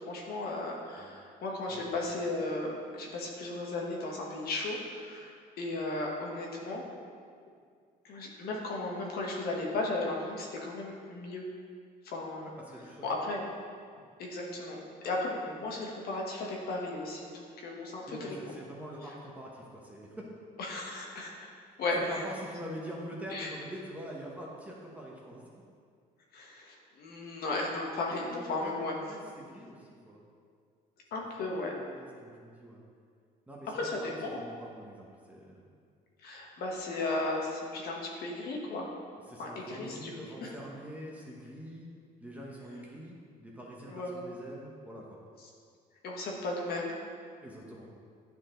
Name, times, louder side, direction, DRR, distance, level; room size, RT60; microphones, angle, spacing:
voice 1, 0.1-5.3 5.6-6.8 8.0-11.4 12.0-12.5 13.0-13.5 14.2-18.3 20.6-21.5 21.8-22.0 23.3-23.5 26.3-29.0 31.1-31.7 33.7-34.4 36.2-38.9 39.4-40.1 40.4-40.5 43.9-44.2 46.0-47.0, left 2 dB, 65° left, -1 dB, 1.4 m, -35 dB
voice 2, 12.4-13.2 18.1-20.2 22.0-25.4 28.1-30.2 31.4-32.8 33.5-35.7 39.3-41.9 42.2-45.2 47.4-47.9, equal, 10° right, -3 dB, 1.1 m, -45 dB
10.5 x 4.6 x 3.8 m, 2.1 s
cardioid pair, 110°, 17 cm